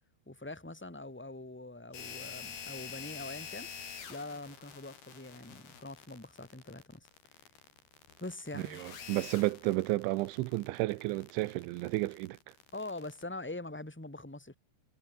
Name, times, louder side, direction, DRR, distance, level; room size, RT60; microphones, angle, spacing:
voice 1, 0.3-3.7 4.1-7.1 8.2-9.1 12.7-14.5, left 2 dB, 5° left, 2.5 m, -43 dB
sound 1, 1.9-13.2, left 7 dB, 55° left, 5.8 m, -47 dB
voice 2, 8.6-12.4, right 19 dB, 85° right, 3.1 m, -32 dB
omnidirectional pair, 5.4 m